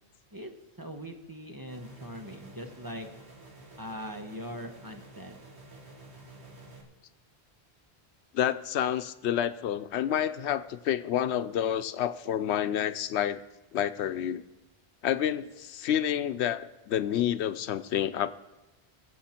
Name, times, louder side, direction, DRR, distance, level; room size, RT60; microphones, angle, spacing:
voice 1, 0.8-3.1 3.8-5.4, equal, 20° right, 5 dB, 1.0 m, -41 dB
sound 1, 1.7-6.8, right 2 dB, 85° right, 2.1 m, -50 dB
voice 2, 8.3-13.4 13.7-14.4 15.0-18.3, left 10 dB, 90° left, 12 dB, 0.9 m, -29 dB
21.5 x 7.5 x 4.4 m, 1.0 s
omnidirectional pair, 1.1 m